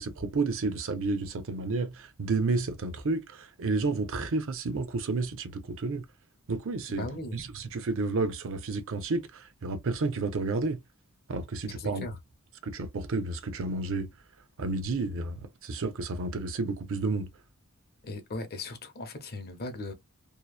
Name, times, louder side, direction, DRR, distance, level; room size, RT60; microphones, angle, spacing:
voice 1, 0.0-6.0 6.5-7.1 7.3-10.8 11.3-12.1 12.6-14.1 14.6-17.3, right 3 dB, 65° right, 0.6 m, -31 dB
voice 2, 6.9-7.4 11.7-12.2 18.0-19.9, left 2 dB, 45° left, 0.8 m, -38 dB
2.8 x 2.0 x 2.3 m
head